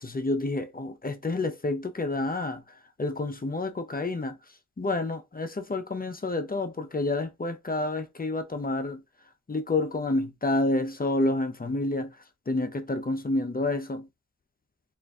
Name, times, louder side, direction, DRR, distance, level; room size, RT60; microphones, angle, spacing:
voice 1, 0.0-2.6 3.0-4.4 4.8-9.0 9.5-12.2 12.5-14.1, left 2 dB, 30° left, 0.6 m, -29 dB
3.7 x 2.5 x 3.4 m
wide cardioid pair, 65°, 29 cm